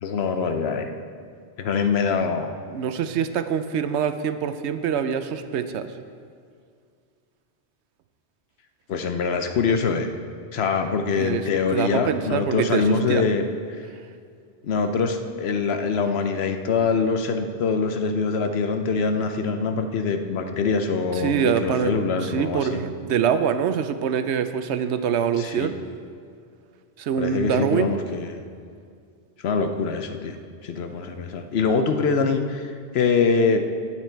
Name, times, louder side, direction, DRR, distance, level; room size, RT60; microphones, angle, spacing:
voice 1, 0.0-0.9 1.6-2.5 8.9-10.1 10.5-13.4 14.6-22.8 25.4-25.7 27.2-28.4 29.4-30.4 30.6-33.7, left 5 dB, 70° left, 7 dB, 1.0 m, -24 dB
voice 2, 2.7-5.9 11.2-13.3 21.1-21.9 22.2-25.8 27.0-27.9, right 8 dB, 85° right, 10 dB, 0.9 m, -25 dB
18.0 x 6.1 x 4.5 m, 2.2 s
omnidirectional pair, 1.1 m